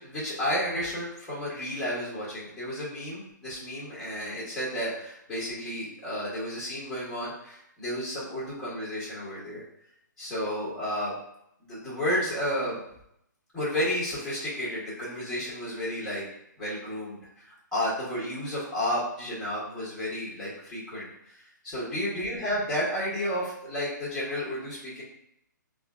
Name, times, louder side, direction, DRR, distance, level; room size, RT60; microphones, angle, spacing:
voice 1, 0.0-9.6 10.2-11.2 11.6-12.8 13.5-16.2 16.6-25.0, equal, 5° left, -10 dB, 1.3 m, -32 dB
5.1 x 2.4 x 2.3 m, 0.76 s
figure-of-eight pair, 130°, 10 cm